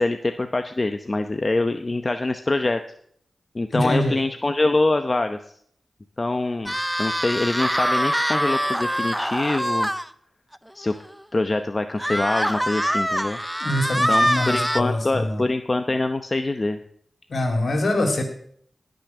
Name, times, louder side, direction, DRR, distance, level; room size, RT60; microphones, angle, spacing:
voice 1, 0.0-2.8 3.5-5.4 6.2-9.9 10.7-10.9 11.3-13.4 14.1-16.8, left 2 dB, 40° left, 7 dB, 0.8 m, -24 dB
voice 2, 3.7-4.2 13.6-15.4 17.3-18.2, left 1 dB, 65° left, 4 dB, 3.2 m, -24 dB
sound 1, 6.7-10.1 10.5-10.6 11.0-11.1 12.0-14.8, equal, 5° right, 0.6 m, -24 dB
18.5 x 6.5 x 6.0 m, 0.64 s
cardioid pair, 40°, 0 cm